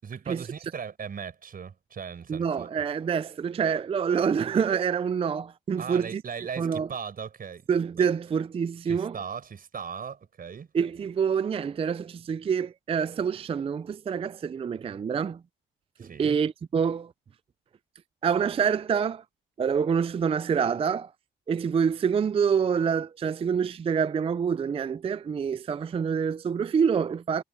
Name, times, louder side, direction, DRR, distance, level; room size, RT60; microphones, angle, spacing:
voice 1, 0.0-2.7 5.8-7.7 8.0-8.1 8.9-10.7 16.0-16.4, right 6 dB, 45° right, 5.5 m, -38 dB
voice 2, 2.3-6.2 6.6-6.9 7.7-9.1 10.7-15.4 16.0-17.1 18.2-19.2 19.6-21.1 21.5-27.4, right 6 dB, 30° right, 0.4 m, -26 dB
cardioid pair, 90°, 20 cm